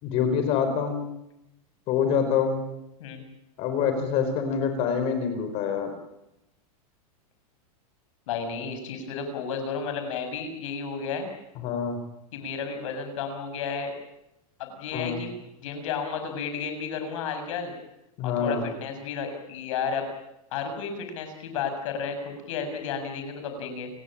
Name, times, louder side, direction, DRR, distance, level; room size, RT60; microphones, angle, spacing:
voice 1, 0.0-1.1 1.9-2.7 3.6-5.9 11.6-12.0 14.9-15.2 18.2-18.7, left 7 dB, 30° left, 7 dB, 4.7 m, -26 dB
voice 2, 8.3-11.3 12.3-13.9 14.6-17.7 18.2-20.0 20.5-23.9, left 6 dB, 55° left, 7 dB, 7.1 m, -32 dB
29.0 x 18.5 x 8.8 m, 0.88 s
supercardioid pair, 170°, 19 cm